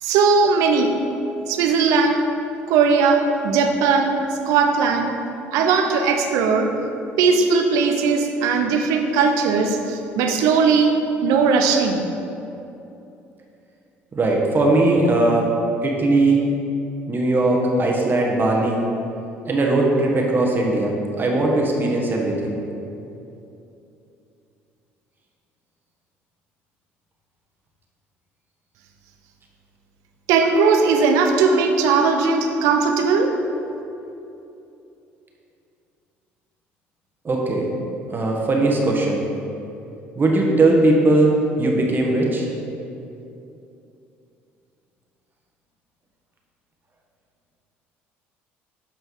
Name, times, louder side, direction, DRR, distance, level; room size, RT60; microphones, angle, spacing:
voice 1, 0.0-0.9 1.5-2.2 2.7-4.1 4.5-5.2 5.5-6.7 7.2-12.1 30.3-33.3, right 5 dB, 75° right, 4 dB, 0.7 m, -18 dB
voice 2, 14.1-15.5 15.8-16.4 17.1-18.8 19.5-20.9 21.2-22.6 37.2-37.7 38.1-39.2 40.2-42.5, right 2 dB, 35° right, -1 dB, 1.2 m, -19 dB
8.3 x 4.3 x 3.8 m, 2.8 s
hypercardioid pair, 65°, 6 cm